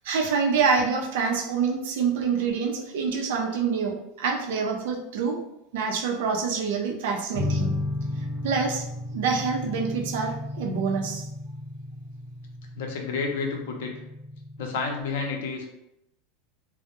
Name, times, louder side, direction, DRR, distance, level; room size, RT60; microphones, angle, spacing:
voice 1, 0.0-5.4 5.7-7.8 8.4-8.9 9.1-11.3, right 5 dB, 70° right, 2 dB, 0.5 m, -26 dB
sound 1, 7.3-15.0, left 2 dB, 20° right, 0.9 m, -34 dB
voice 2, 12.7-13.9 14.6-15.7, left 4 dB, 70° left, 1 dB, 0.5 m, -30 dB
2.1 x 2.0 x 2.8 m, 0.84 s
supercardioid pair, 165°, 0 cm